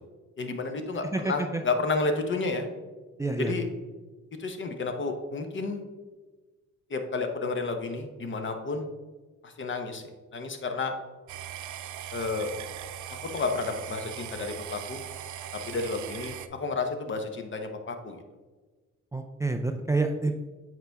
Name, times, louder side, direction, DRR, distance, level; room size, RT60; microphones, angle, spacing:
voice 1, 0.4-2.7 3.4-3.6 4.4-5.8 6.9-8.9 9.4-10.0 10.3-10.9 12.1-12.5 13.3-15.0 15.5-18.2, left 3 dB, 40° left, 6 dB, 0.9 m, -31 dB
voice 2, 1.1-1.6 3.2-3.5 19.1-20.3, right 3 dB, 10° right, 6 dB, 0.4 m, -28 dB
sound 1, 11.3-16.5, right 10 dB, 70° right, 0.6 m, -40 dB
7.8 x 4.6 x 3.4 m, 1.3 s
cardioid pair, 90°, 30 cm